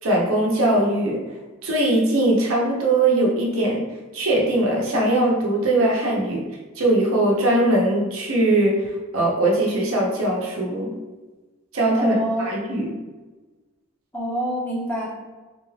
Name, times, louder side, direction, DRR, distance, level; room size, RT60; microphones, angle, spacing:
voice 1, 0.0-1.2 1.6-3.8 4.1-6.4 6.8-10.9 11.7-12.9, right 1 dB, 85° right, -2 dB, 0.9 m, -20 dB
voice 2, 12.0-12.5 14.1-15.1, equal, 10° left, -6 dB, 0.8 m, -26 dB
3.8 x 2.3 x 3.2 m, 1.2 s
head